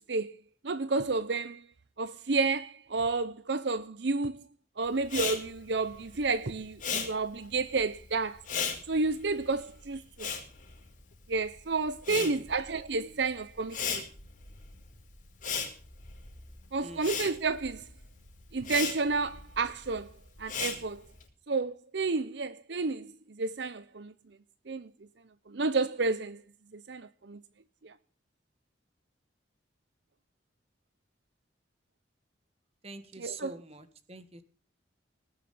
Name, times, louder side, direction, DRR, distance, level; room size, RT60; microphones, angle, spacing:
voice 1, 0.6-1.6 2.0-4.4 4.8-8.4 8.9-10.3 11.3-14.0 16.7-17.8 18.5-20.1 20.4-21.0 21.5-24.1 24.7-24.9 25.5-26.4 26.7-27.4 27.8-27.9 33.2-33.5, right 3 dB, 70° right, 0.7 m, -31 dB
Respiratory sounds, 5.0-11.5 11.8-21.2, left 6 dB, 45° left, 5.3 m, -37 dB
voice 2, 12.1-12.5 16.8-17.1 32.8-34.4, right 3 dB, 35° right, 1.8 m, -45 dB
19.0 x 7.6 x 6.9 m
head